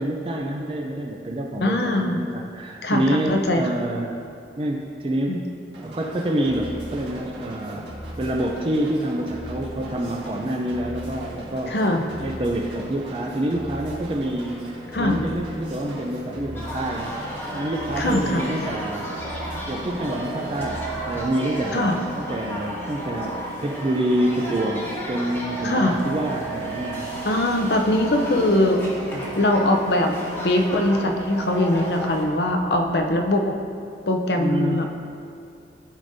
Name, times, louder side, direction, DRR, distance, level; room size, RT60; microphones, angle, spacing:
voice 1, 0.0-4.1 4.6-5.4 5.8-7.9 8.2-11.7 12.2-17.2 17.5-19.1 19.7-21.9 22.2-23.3 23.6-27.1 29.1-29.3 34.4-34.9, right 1 dB, 30° right, 1 dB, 0.4 m, -27 dB
voice 2, 1.6-2.2 2.8-3.6 5.3-5.4 11.7-12.1 14.9-15.2 18.0-18.4 21.7-22.0 25.6-25.9 27.2-28.8 29.4-30.1 30.4-33.5 34.1-34.9, left 1 dB, 65° left, 4 dB, 0.6 m, -21 dB
sound 1, 5.7-21.3, right 1 dB, 65° right, 1.7 m, -38 dB
sound 2, 16.5-32.2, equal, 10° left, 1.0 m, -35 dB
sound 3, 17.5-33.3, right 4 dB, 90° right, 0.6 m, -37 dB
12.0 x 5.0 x 2.7 m, 2.4 s
head